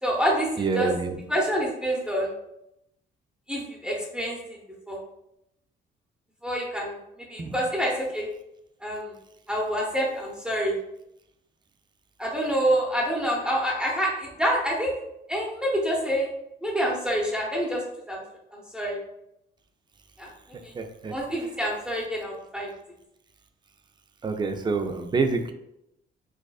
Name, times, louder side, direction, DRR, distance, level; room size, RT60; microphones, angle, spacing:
voice 1, 0.0-0.9 1.3-2.3 3.5-4.6 4.9-5.0 6.4-7.0 7.3-8.3 8.8-9.1 9.5-10.7 12.2-14.9 15.3-16.3 16.6-18.2 18.5-19.0 20.2-20.3 20.6-20.7 21.1-22.7, equal, 5° right, -3 dB, 0.9 m, -27 dB
voice 2, 0.6-1.2 7.4-7.5 20.7-21.1 24.2-25.5, right 4 dB, 20° right, 6 dB, 0.4 m, -27 dB
4.7 x 2.5 x 2.3 m, 0.83 s
cardioid pair, 90°, 20 cm